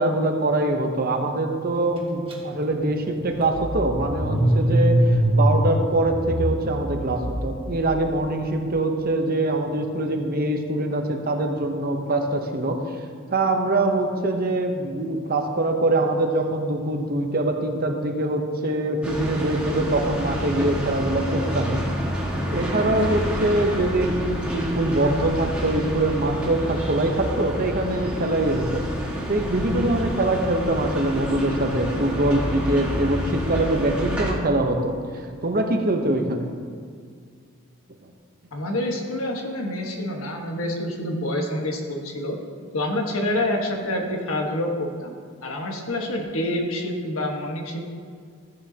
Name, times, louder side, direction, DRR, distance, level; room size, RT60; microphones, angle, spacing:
voice 1, 0.0-12.8 13.3-21.8 22.5-28.8 29.1-35.0 35.4-36.5, right 2 dB, 45° right, 4 dB, 0.9 m, -23 dB
Car / Engine starting, 2.3-2.4 2.7-7.9, right 1 dB, 25° right, 1.6 m, -23 dB
sound 1, 19.0-34.3, equal, 5° right, 1.7 m, -28 dB
voice 2, 38.5-42.4 42.7-45.1 45.4-47.8, left 1 dB, 75° left, 1 dB, 1.5 m, -27 dB
14.5 x 8.8 x 2.9 m, 2.1 s
head